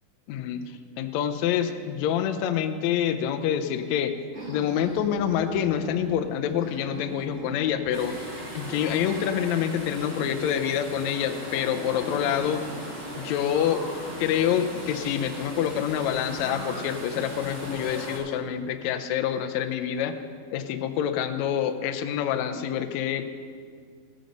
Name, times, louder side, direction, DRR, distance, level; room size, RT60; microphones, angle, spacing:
voice 1, 0.3-4.1 4.5-8.1 8.5-12.6 13.2-13.9 14.2-20.2 20.5-23.4, left 9 dB, 90° left, 8 dB, 1.5 m, -27 dB
sound 1, 4.3-6.2 6.5-8.2 8.6-10.6 11.1-12.9 13.4-15.2 16.1-18.0, right 1 dB, 55° right, 0.7 m, -42 dB
sound 2, 7.9-18.2, right 1 dB, 35° right, 4.3 m, -38 dB
15.0 x 9.2 x 5.3 m, 2.1 s
omnidirectional pair, 4.1 m